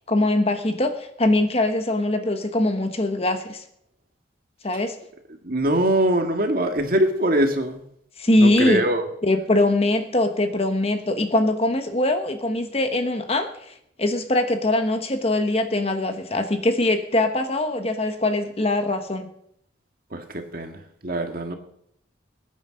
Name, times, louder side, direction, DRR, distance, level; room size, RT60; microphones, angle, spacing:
voice 1, 0.0-3.6 4.6-5.0 8.2-8.8 9.2-13.7 14.0-19.3, left 1 dB, 30° left, 7 dB, 1.2 m, -22 dB
voice 2, 5.4-7.8 8.4-9.1 20.1-21.6, right 1 dB, 50° right, 4 dB, 1.9 m, -23 dB
21.0 x 9.3 x 5.2 m, 0.72 s
head